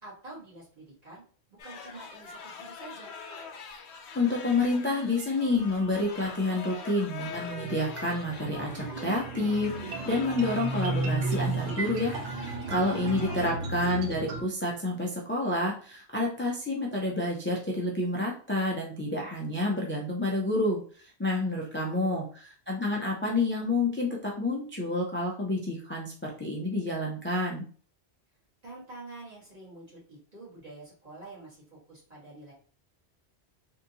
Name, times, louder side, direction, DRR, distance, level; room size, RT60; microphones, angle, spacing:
voice 1, 0.0-1.2 1.6-3.1 12.7-13.5 21.5-22.2 28.6-32.5, right 2 dB, 35° right, -7 dB, 1.8 m, -47 dB
sound 1, 1.6-13.6, left 5 dB, 85° left, 0.9 m, -44 dB
voice 2, 4.1-27.7, left 2 dB, 15° left, -3 dB, 0.4 m, -29 dB
sound 2, 7.3-14.4, right 3 dB, 60° right, 0.8 m, -34 dB
3.5 x 2.7 x 2.8 m, 0.43 s
omnidirectional pair, 1.1 m